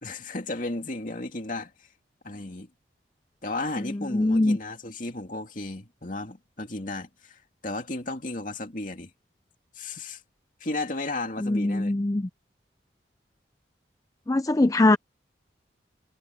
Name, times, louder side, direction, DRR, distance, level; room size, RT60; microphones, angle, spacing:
voice 1, 0.0-1.7 2.2-2.7 3.4-9.1 9.7-10.2 10.6-11.9, left 2 dB, 45° left, 2.5 m, -34 dB
voice 2, 3.9-4.6 11.4-12.3 14.3-15.0, left 2 dB, 20° left, 0.4 m, -22 dB
head